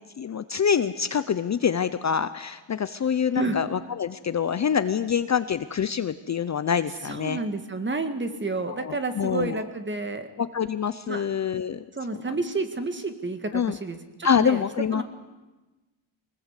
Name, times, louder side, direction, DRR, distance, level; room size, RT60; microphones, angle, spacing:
voice 1, 0.2-7.4 8.7-9.6 10.4-11.8 13.5-13.8 14.2-15.0, left 7 dB, 35° left, 12 dB, 0.7 m, -26 dB
voice 2, 7.0-10.3 11.1-11.3 12.0-14.6 14.9-15.0, right 3 dB, 25° right, 8 dB, 1.9 m, -30 dB
23.0 x 20.0 x 8.3 m, 1.2 s
cardioid pair, 135°, 49 cm